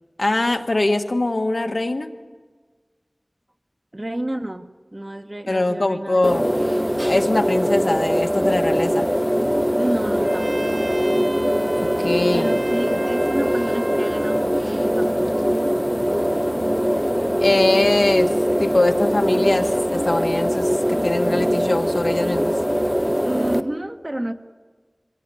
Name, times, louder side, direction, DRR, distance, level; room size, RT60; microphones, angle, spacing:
voice 1, 0.2-2.1 5.5-6.5 7.0-9.1 12.0-12.5 17.4-18.3 18.6-22.5, left 2 dB, 70° left, 6 dB, 1.5 m, -22 dB
voice 2, 3.9-6.7 9.8-10.9 12.3-16.4 23.2-24.3, right 1 dB, 35° right, 6 dB, 1.4 m, -31 dB
sound 1, 6.2-23.6, equal, 5° right, 1.1 m, -21 dB
Trumpet, 10.2-14.5, right 1 dB, 55° right, 1.6 m, -36 dB
24.5 x 16.5 x 9.9 m, 1.4 s
wide cardioid pair, 45°, 0 cm